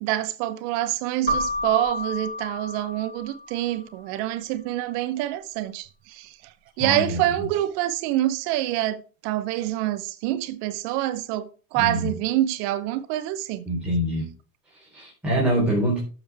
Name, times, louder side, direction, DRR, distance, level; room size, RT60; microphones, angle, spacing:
voice 1, 0.0-13.7, right 14 dB, 60° right, 1.2 m, -26 dB
Keyboard (musical), 1.3-3.8, left 1 dB, 20° left, 6.4 m, -30 dB
voice 2, 6.8-7.2 11.8-12.1 13.7-14.3 14.7-16.0, right 1 dB, ahead, 3.8 m, -25 dB
12.0 x 7.2 x 3.5 m
supercardioid pair, 115°, 46 cm